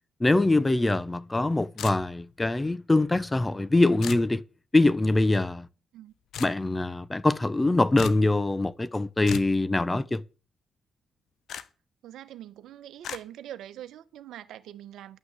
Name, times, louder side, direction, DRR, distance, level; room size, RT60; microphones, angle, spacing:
voice 1, 0.2-4.4 4.7-5.7 6.4-10.2, left 2 dB, 20° left, 0.7 m, -23 dB
sound 1, 1.8-2.3 4.0-4.3 6.3-6.6 8.0-8.3 9.2-9.6 11.5-11.6 13.0-13.2, left 8 dB, 75° left, 1.0 m, -35 dB
voice 2, 12.0-15.2, right 12 dB, 85° right, 0.9 m, -43 dB
11.0 x 6.0 x 8.1 m
supercardioid pair, 60°, 0 cm